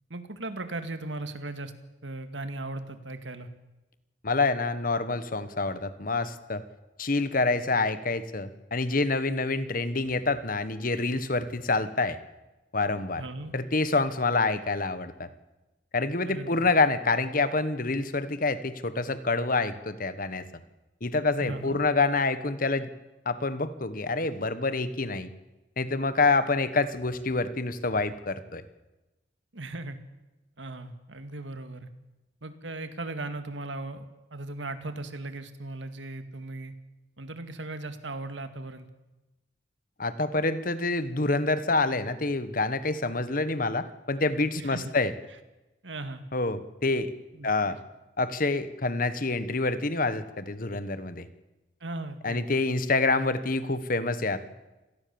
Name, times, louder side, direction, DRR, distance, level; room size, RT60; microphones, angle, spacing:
voice 1, 0.1-1.7 2.0-3.5 13.2-13.5 16.2-16.6 21.4-21.8 29.5-30.0 30.6-31.9 32.4-36.7 37.2-38.9 44.5-44.9 45.8-46.2 47.3-47.5 51.8-52.6, right 2 dB, 80° right, 9 dB, 2.1 m, -37 dB
voice 2, 4.2-6.6 7.0-12.2 12.7-13.2 13.5-15.3 15.9-20.4 21.0-22.9 23.2-25.3 25.8-28.6 40.0-45.1 46.3-47.1 47.4-47.8 48.2-51.3 52.2-54.5, left 3 dB, 50° left, 13 dB, 1.4 m, -27 dB
26.0 x 18.5 x 7.2 m, 1.0 s
head